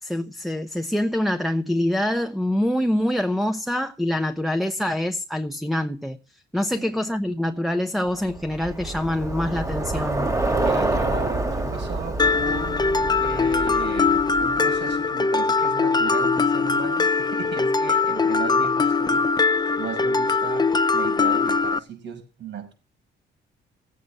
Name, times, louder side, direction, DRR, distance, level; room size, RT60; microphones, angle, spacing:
voice 1, 0.0-10.3, left 1 dB, ahead, 1.0 m, -25 dB
voice 2, 6.5-7.0 10.6-12.8 13.2-19.3 19.8-22.7, right 6 dB, 65° right, 6.0 m, -36 dB
Bicycle, 8.2-14.8, right 2 dB, 15° right, 2.2 m, -27 dB
Mallet percussion, 12.2-21.8, left 4 dB, 20° left, 0.7 m, -21 dB
17.0 x 8.2 x 5.5 m
cardioid pair, 90°, 20 cm